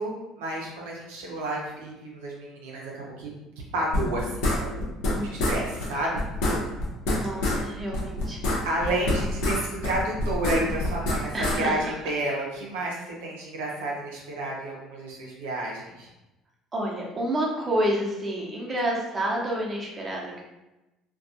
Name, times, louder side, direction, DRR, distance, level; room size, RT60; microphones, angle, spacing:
voice 1, 0.0-3.3 3.7-6.2 8.6-16.1, right 1 dB, 90° right, -3 dB, 0.5 m, -31 dB
sound 1, 3.9-5.1 5.4-5.6 5.8-5.9 6.1-7.6 7.9-9.6 9.8-11.6, left 1 dB, 80° left, 0.7 m, -26 dB
voice 2, 5.1-5.6 7.1-8.4 11.3-12.1 16.7-20.4, right 1 dB, 30° right, -2 dB, 0.7 m, -29 dB
2.4 x 2.2 x 2.7 m, 0.99 s
supercardioid pair, 80°, 0 cm